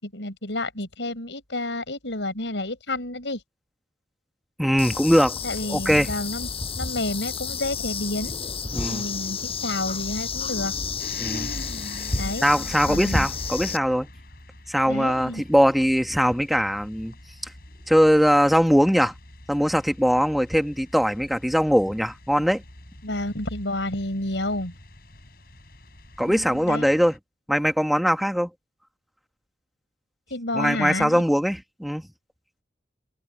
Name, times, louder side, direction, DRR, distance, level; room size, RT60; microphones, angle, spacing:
voice 1, 0.0-3.4 5.4-6.5 6.8-8.3 8.9-10.7 12.2-12.5 12.9-13.3 14.9-15.4 23.0-24.7 26.3-27.0 30.3-31.2, left 1 dB, 85° left, 5.7 m, -30 dB
voice 2, 4.6-5.4 5.7-6.1 8.7-9.0 11.2-11.5 12.4-14.1 14.7-17.1 17.9-19.1 19.5-22.6 26.2-27.1 27.5-28.5 30.5-32.0, equal, ahead, 1.4 m, -21 dB
sound 1, 4.8-13.8, left 4 dB, 30° left, 7.9 m, -31 dB
sound 2, 11.0-27.2, left 1 dB, 55° left, 5.6 m, -45 dB
head